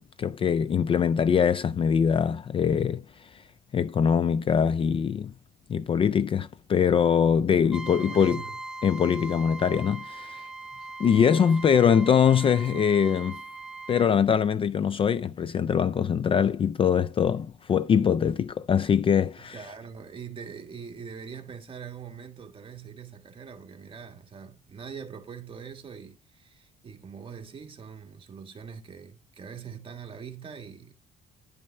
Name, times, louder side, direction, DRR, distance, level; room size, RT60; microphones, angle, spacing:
voice 1, 0.2-3.0 3.7-5.3 5.7-8.4 8.8-10.4 11.0-13.4 13.9-19.6, left 7 dB, 30° left, 0.3 m, -23 dB
voice 2, 7.5-8.6 12.4-13.0 19.5-30.9, right 6 dB, 30° right, 1.5 m, -43 dB
Trumpet, 7.7-14.1, right 2 dB, 5° right, 1.0 m, -40 dB
10.5 x 5.4 x 3.3 m
cardioid pair, 110°, 17 cm